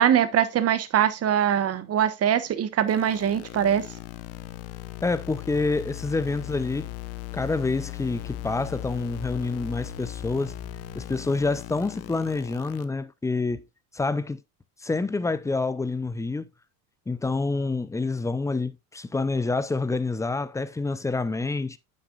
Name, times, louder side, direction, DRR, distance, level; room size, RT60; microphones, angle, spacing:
voice 1, 0.0-3.8, right 9 dB, 30° right, 1.2 m, -22 dB
sound 1, 2.9-12.8, left 19 dB, 65° left, 1.0 m, -38 dB
voice 2, 5.0-6.9 7.3-10.5 10.9-13.6 13.9-14.4 14.8-16.5 17.1-21.8, left 3 dB, 5° left, 0.5 m, -27 dB
9.0 x 7.4 x 2.4 m
hypercardioid pair, 90°, 45 cm